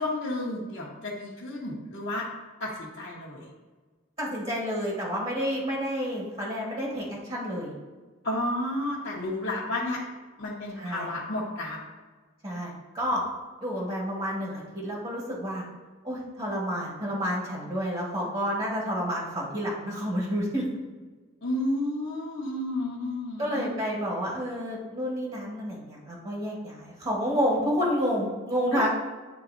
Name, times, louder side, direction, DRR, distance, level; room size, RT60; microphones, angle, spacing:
voice 1, 0.0-2.3 2.6-3.5 8.2-10.0 10.4-11.8 21.4-23.7 28.7-28.9, left 1 dB, 55° left, -7 dB, 1.0 m, -31 dB
voice 2, 4.2-7.7 10.8-11.1 12.4-13.2 13.6-15.6 16.0-20.7 23.4-28.9, equal, 30° right, -4 dB, 1.5 m, -29 dB
9.6 x 3.9 x 2.6 m, 1.3 s
head